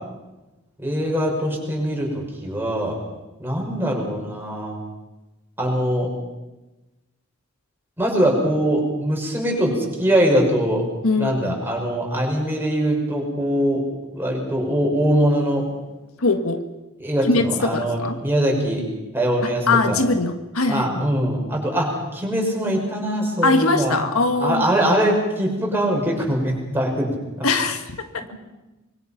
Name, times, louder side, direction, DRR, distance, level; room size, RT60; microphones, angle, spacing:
voice 1, 0.8-3.0 3.4-4.7 5.6-6.1 8.0-9.7 10.0-10.8 11.2-13.8 14.1-15.7 17.0-18.8 19.1-20.0 20.7-24.0 24.4-27.5 28.2-28.3, equal, 10° right, -1 dB, 6.2 m, -22 dB
voice 2, 11.0-11.6 16.2-16.6 17.2-18.2 19.7-21.0 23.4-24.7 27.4-28.2, left 3 dB, 85° left, 7 dB, 1.7 m, -21 dB
25.5 x 23.0 x 5.9 m, 1.1 s
head